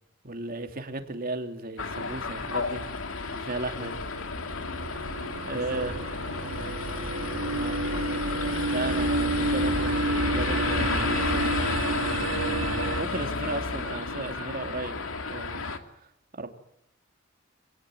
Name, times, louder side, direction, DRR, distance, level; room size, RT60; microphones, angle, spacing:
voice 1, 0.2-2.8 3.3-3.9 5.4-6.0 7.5-7.8 8.7-11.7 13.0-15.0 15.3-15.7 16.3-16.5, right 2 dB, 45° right, 5 dB, 3.1 m, -35 dB
sound 1, 1.8-15.8, left 4 dB, 85° left, 2.5 m, -32 dB
voice 2, 3.7-4.1 5.5-6.0 6.3-7.2 12.4-12.9, equal, 55° left, 7 dB, 6.7 m, -44 dB
sound 2, 3.9-13.0, right 2 dB, 85° right, 1.5 m, -30 dB
28.0 x 19.0 x 9.3 m, 0.82 s
head